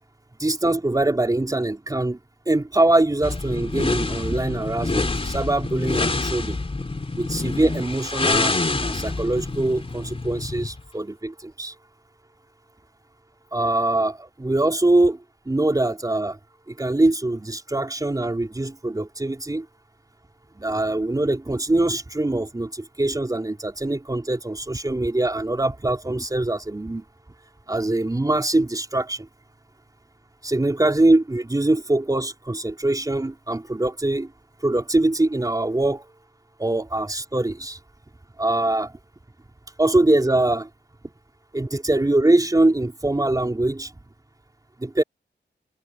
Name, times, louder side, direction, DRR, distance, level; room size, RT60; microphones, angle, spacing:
voice 1, 0.4-2.2 2.5-6.6 7.2-11.7 13.5-15.2 15.5-16.4 16.7-19.7 20.6-27.0 27.7-29.3 30.4-34.3 34.6-36.1 36.6-37.8 38.4-38.9 39.8-40.7 41.5-43.9 44.8-45.0, right 2 dB, 20° right, 3.9 m, -23 dB
sound 1, 3.2-10.8, left 3 dB, 30° left, 3.8 m, -26 dB
wide cardioid pair, 145°, 19 cm